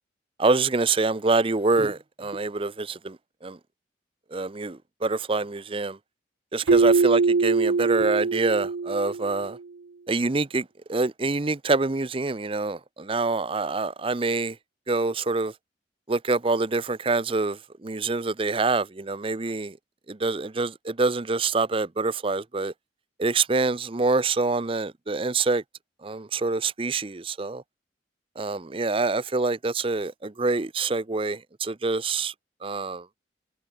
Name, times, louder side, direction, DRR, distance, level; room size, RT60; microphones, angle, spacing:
voice 1, 0.4-3.2 3.4-3.6 4.3-6.0 6.5-9.6 10.1-14.5 14.9-15.5 16.1-17.6 17.8-19.7 20.1-22.7 23.2-25.6 26.0-27.6 28.4-32.3 32.6-33.0, right 3 dB, 30° right, 0.6 m, -26 dB
Keyboard (musical), 6.7-9.5, right 4 dB, 80° right, 0.6 m, -22 dB
head